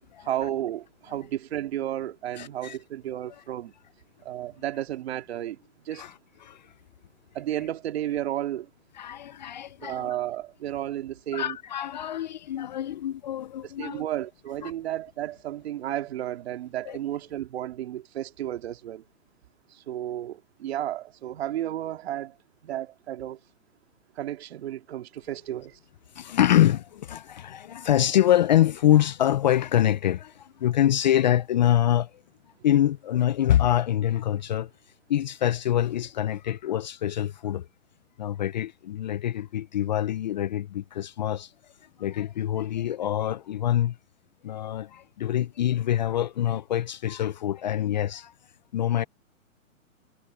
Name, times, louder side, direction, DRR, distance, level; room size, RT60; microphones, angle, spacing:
voice 1, 0.2-3.7 4.2-6.0 7.3-8.7 9.8-11.6 13.6-19.0 19.7-22.3 22.6-23.4 24.2-25.8, right 12 dB, 50° right, 2.5 m, -33 dB
voice 2, 2.4-2.8 5.9-6.1 6.4-6.7 9.0-10.1 11.3-14.0 14.6-14.7 16.9-17.0 26.1-32.1 32.6-34.7 35.1-37.7 38.2-41.5 42.0-44.0 44.4-48.3 48.7-49.0, left 11 dB, 35° left, 0.6 m, -25 dB
hypercardioid pair, 150°, 41 cm